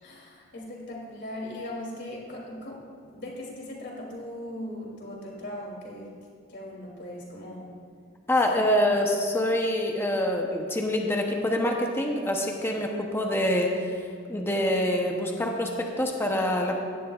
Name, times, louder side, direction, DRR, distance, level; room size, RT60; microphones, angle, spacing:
voice 1, 0.0-2.9 3.1-6.1 6.5-7.7 8.5-8.6, left 1 dB, 60° left, -3 dB, 2.9 m, -39 dB
voice 2, 8.3-13.9 14.3-16.7, left 1 dB, 10° left, 1 dB, 0.8 m, -25 dB
16.5 x 11.0 x 2.4 m, 2.2 s
head